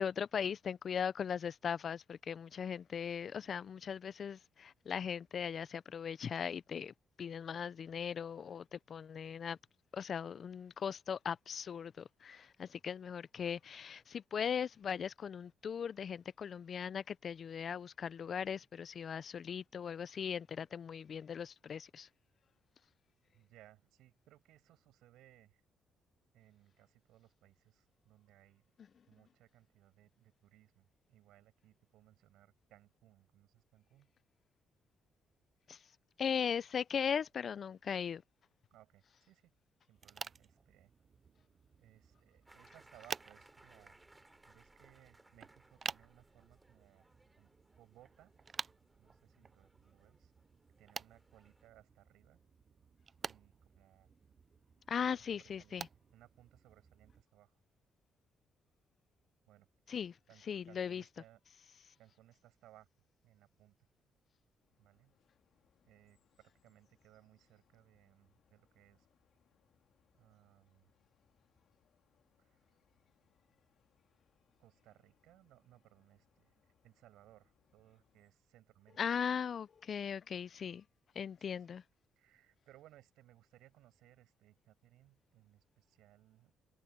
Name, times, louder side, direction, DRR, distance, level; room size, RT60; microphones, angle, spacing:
voice 1, 0.0-9.6 9.9-22.1 35.7-35.8 36.2-38.2 54.9-55.9 59.9-60.2 60.5-61.0 79.0-80.8 81.2-81.8, left 7 dB, 50° left, 0.5 m, -39 dB
voice 2, 23.3-25.6 26.3-28.6 29.1-34.1 38.7-39.5 39.9-40.9 41.8-44.0 44.5-47.0 47.4-47.5 47.8-48.3 49.0-50.3 50.8-52.4 53.2-54.1 55.0-57.6 59.5-59.7 60.3-61.4 62.0-62.9 63.2-63.8 64.8-65.1 65.8-69.1 70.1-70.9 72.4-72.8 74.6-79.0 81.4-81.7 82.1-86.5, right 14 dB, 90° right, 6.8 m, -64 dB
sound 1, 39.9-57.2, right 5 dB, 40° right, 0.4 m, -50 dB
sound 2, 42.4-51.7, right 2 dB, 15° right, 3.2 m, -65 dB
sound 3, 64.6-78.3, left 9 dB, 70° left, 4.8 m, -77 dB
cardioid pair, 90°, 0 cm